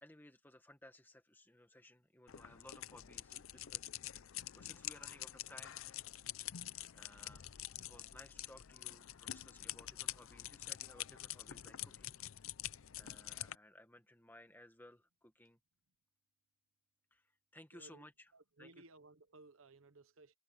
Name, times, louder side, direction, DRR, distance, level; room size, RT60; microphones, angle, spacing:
voice 1, 0.0-3.9 4.5-5.8 6.9-7.5 7.8-12.2 12.9-15.6 17.1-18.3 18.6-18.8, left 1 dB, 10° left, 1.8 m, -59 dB
sound 1, 2.3-13.6, left 13 dB, 80° left, 0.6 m, -47 dB
voice 2, 17.7-18.1 18.3-20.3, right 2 dB, 80° right, 1.1 m, -60 dB
head